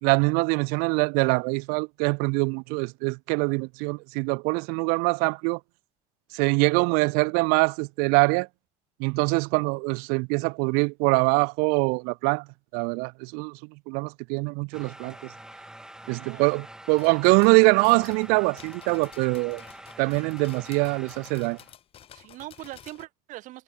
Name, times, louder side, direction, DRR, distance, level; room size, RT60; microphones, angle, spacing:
voice 1, 0.0-5.6 6.3-8.5 9.0-12.5 12.7-13.6 13.9-15.2 16.1-19.6 20.0-21.6, right 34 dB, 75° right, 0.5 m, -23 dB
sound 1, 14.7-21.7, right 1 dB, 5° right, 5.7 m, -46 dB
voice 2, 16.0-16.5 22.1-23.6, right 16 dB, 55° right, 2.1 m, -42 dB
sound 2, 16.9-23.1, left 10 dB, 35° left, 1.7 m, -51 dB
cardioid pair, 145°, 16 cm